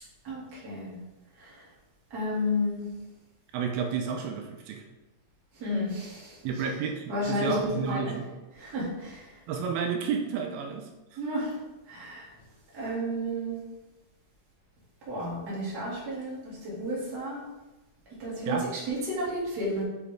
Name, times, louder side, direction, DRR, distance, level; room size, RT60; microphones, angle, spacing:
voice 1, 0.2-1.0 1.4-1.6 2.1-2.8 5.6-6.4 7.1-8.1 8.5-9.3 11.2-11.6 11.9-12.3 12.7-13.6 15.1-17.4 18.2-18.6 18.9-19.8, left 1 dB, 30° right, -7 dB, 2.1 m, -32 dB
voice 2, 3.5-4.8 6.4-8.3 9.5-10.9 11.1-11.2 18.5-18.7, right 6 dB, 90° right, 3 dB, 2.5 m, -31 dB
6.8 x 5.0 x 3.4 m, 1.0 s
omnidirectional pair, 4.4 m